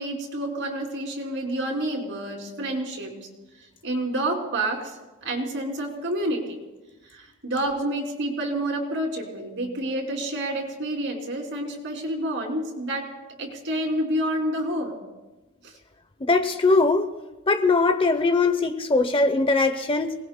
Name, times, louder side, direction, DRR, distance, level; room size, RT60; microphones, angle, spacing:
voice 1, 0.0-3.1 3.8-5.0 5.2-6.6 7.1-13.1 13.4-15.0 15.6-15.7, right 1 dB, 60° right, 1 dB, 3.0 m, -28 dB
voice 2, 16.2-17.1 17.5-20.1, left 3 dB, 25° left, 9 dB, 0.7 m, -21 dB
29.0 x 19.5 x 2.2 m, 1.1 s
head